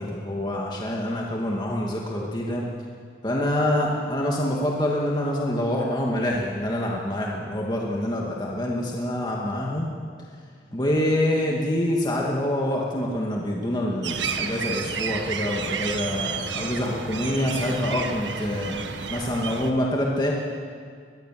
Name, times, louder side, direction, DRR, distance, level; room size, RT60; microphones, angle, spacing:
voice 1, 0.0-2.6 3.2-9.9 10.7-20.3, left 1 dB, 25° left, -2 dB, 2.3 m, -26 dB
sound 1, 14.0-19.7, right 5 dB, 90° right, 1.6 m, -31 dB
22.5 x 21.5 x 7.8 m, 2.1 s
head